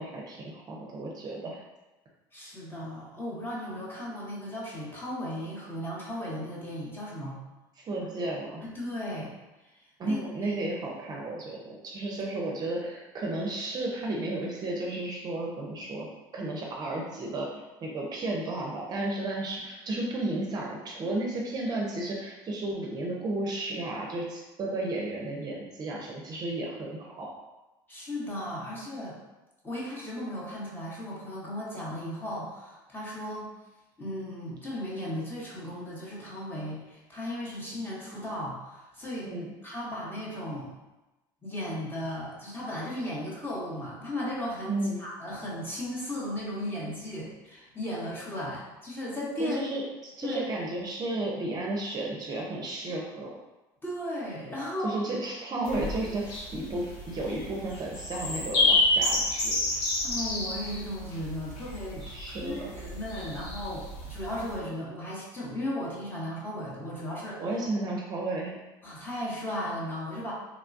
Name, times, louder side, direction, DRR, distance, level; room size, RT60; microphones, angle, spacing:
voice 1, 0.0-1.6 7.8-8.6 10.0-16.1 16.3-27.3 39.2-39.5 44.7-45.0 49.4-53.3 54.8-59.6 62.1-62.7 67.4-68.6, right 2 dB, 35° right, -2 dB, 0.5 m, -33 dB
voice 2, 2.3-7.4 7.9-8.1 8.6-9.3 10.0-10.5 27.9-29.2 29.6-33.5 34.0-39.3 39.6-40.7 41.4-49.6 50.2-50.5 53.8-55.0 60.0-67.4 68.8-70.3, left 1 dB, 20° left, -5 dB, 0.9 m, -36 dB
sound 1, 55.6-64.5, left 2 dB, 75° left, 0.8 m, -30 dB
3.0 x 2.2 x 2.5 m, 1.1 s
supercardioid pair, 100°, 11 cm